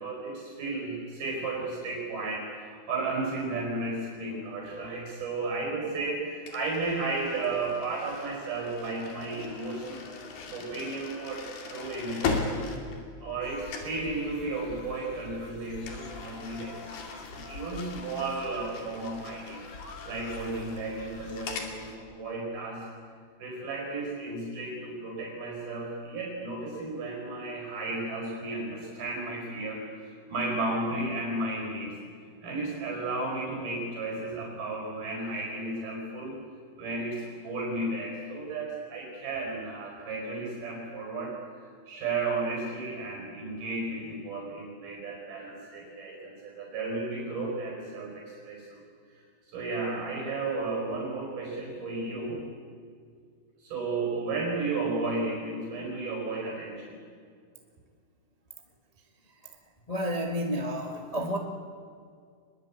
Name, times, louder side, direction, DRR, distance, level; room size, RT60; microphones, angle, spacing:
voice 1, 0.0-10.1 10.5-12.5 13.2-19.6 20.0-22.9 23.4-32.0 32.4-36.4 36.8-41.4 41.9-48.8 49.5-52.4 53.6-57.0, right 3 dB, 65° right, -1 dB, 6.6 m, -33 dB
sound 1, 6.5-13.4 13.7-14.0 15.8-21.8, left 4 dB, 75° left, 4.5 m, -39 dB
sound 2, 13.4-22.0, left 3 dB, 35° left, 2.5 m, -47 dB
voice 2, 59.9-61.4, equal, 55° left, 2 dB, 0.4 m, -30 dB
24.0 x 21.5 x 8.6 m, 2.2 s
omnidirectional pair, 4.6 m